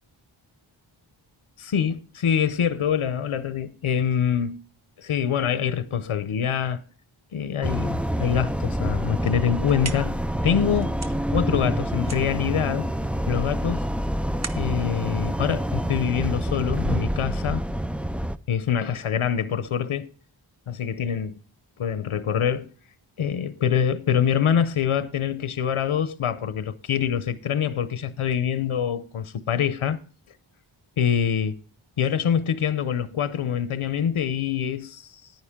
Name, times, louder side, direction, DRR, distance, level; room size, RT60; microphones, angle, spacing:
voice 1, 1.6-4.6 5.0-6.8 7.3-10.2 10.4-11.0 11.3-12.9 13.3-13.9 14.5-17.6 18.5-20.1 20.7-21.4 21.8-22.7 23.2-30.0 31.0-31.6 32.0-35.3, left 8 dB, 80° left, 0.8 m, -25 dB
sound 1, 7.6-18.4, right 1 dB, 5° right, 0.4 m, -27 dB
sound 2, 9.5-16.3, right 4 dB, 35° right, 0.9 m, -42 dB
10.5 x 9.7 x 3.6 m
wide cardioid pair, 75°, 49 cm